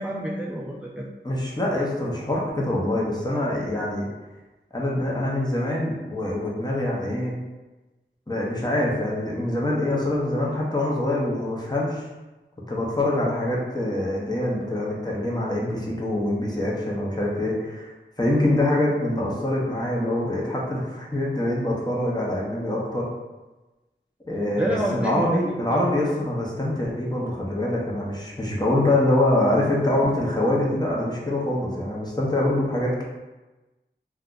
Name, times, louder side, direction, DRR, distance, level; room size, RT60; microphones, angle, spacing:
voice 1, 0.0-1.1 24.6-25.4 25.7-25.9, right 1 dB, 5° right, -4 dB, 0.3 m, -28 dB
voice 2, 1.2-4.1 4.7-7.4 8.3-12.0 12.7-17.9 18.2-23.1 24.3-33.1, left 1 dB, 20° left, -4 dB, 0.8 m, -24 dB
2.5 x 2.2 x 3.8 m, 1.1 s
wide cardioid pair, 45°, 20 cm